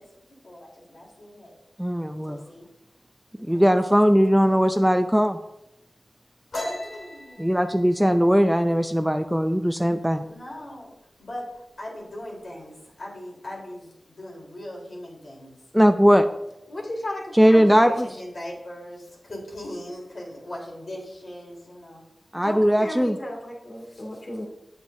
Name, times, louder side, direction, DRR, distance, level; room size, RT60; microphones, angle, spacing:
voice 1, 0.4-1.5 2.3-2.6 3.5-3.6 4.4-4.6 6.6-7.5 10.2-10.9 11.2-11.5 11.8-15.5 17.7-22.0, left 1 dB, 60° left, 3.5 m, -40 dB
voice 2, 1.8-2.5 3.4-5.4 7.4-10.3 15.7-16.3 17.3-18.1 22.3-23.2, equal, 5° right, 0.4 m, -19 dB
sound 1, 6.5-10.0 10.3-10.6 11.0-11.5 11.8-12.5, left 1 dB, 85° left, 3.2 m, -37 dB
voice 3, 16.7-18.0 22.3-24.4, left 1 dB, 45° left, 2.2 m, -34 dB
9.9 x 8.1 x 2.6 m
wide cardioid pair, 70°, 0 cm